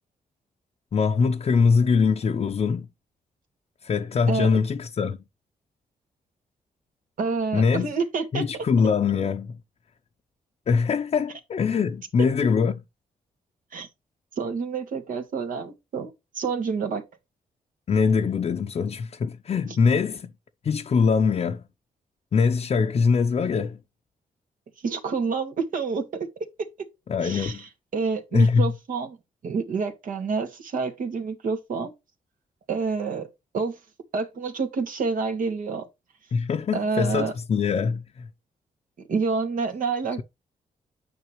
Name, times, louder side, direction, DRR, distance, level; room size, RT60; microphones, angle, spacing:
voice 1, 0.9-2.9 3.8-5.2 7.5-7.9 8.3-9.6 10.7-12.8 17.9-20.3 20.6-21.6 22.3-23.8 27.1-27.6 28.3-28.7 36.3-38.3, left 5 dB, 45° left, 0.7 m, -23 dB
voice 2, 7.2-8.7 13.7-13.9 14.4-17.0 24.8-26.3 27.2-29.2 29.4-31.9 32.7-33.8 34.1-35.8 36.7-37.3 39.1-40.2, right 4 dB, 70° right, 2.2 m, -28 dB
9.5 x 5.8 x 3.2 m
cardioid pair, 110°, 15 cm